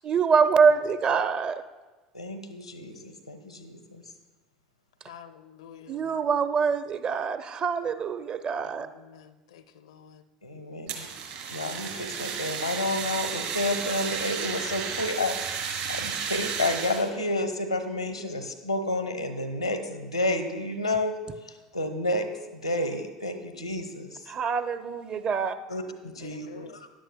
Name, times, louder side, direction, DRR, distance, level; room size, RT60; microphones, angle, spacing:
voice 1, 0.0-1.6 5.9-8.9 24.3-25.5, right 6 dB, 35° right, 10 dB, 0.6 m, -25 dB
voice 2, 2.1-4.0 10.4-11.1 11.5-15.3 15.9-21.2 21.4-22.3 22.5-24.2 25.7-26.9, left 1 dB, 90° left, 6 dB, 0.9 m, -30 dB
voice 3, 5.1-6.2 8.8-10.2 13.7-13.8 26.2-26.8, left 9 dB, 65° left, 11 dB, 0.5 m, -48 dB
Fire, 10.9-17.1, right 7 dB, 60° right, 1.8 m, -33 dB
15.0 x 10.5 x 2.2 m, 1.2 s
figure-of-eight pair, 70°, 3 cm